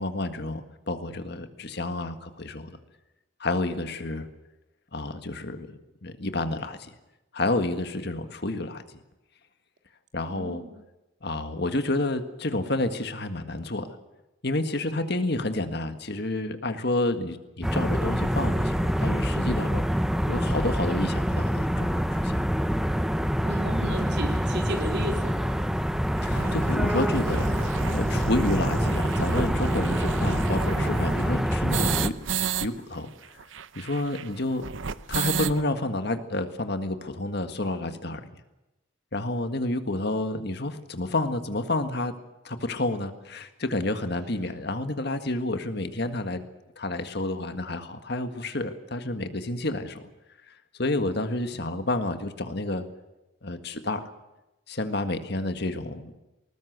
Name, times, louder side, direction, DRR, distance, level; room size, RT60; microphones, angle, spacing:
voice 1, 0.0-2.8 3.4-4.3 4.9-6.9 7.3-8.8 10.1-10.6 11.2-14.0 14.4-20.0 20.3-22.4 26.2-32.1 32.6-33.1 33.8-34.7 35.1-38.4 39.1-42.1 42.4-46.4 46.8-50.0 50.5-50.6 50.8-52.9 53.4-54.1 54.7-56.2, left 2 dB, 55° left, 8 dB, 1.8 m, -30 dB
voice 2, 10.3-10.8 23.4-25.6, right 1 dB, 55° right, 3 dB, 3.6 m, -34 dB
sound 1, 17.6-32.1, equal, ahead, 0.9 m, -26 dB
sound 2, 24.0-24.1 24.8-24.9 25.1-25.2 25.5-25.6 26.0-32.7 32.9-33.0 33.2-35.6, right 6 dB, 75° right, 0.8 m, -32 dB
20.0 x 20.0 x 8.1 m, 0.98 s
head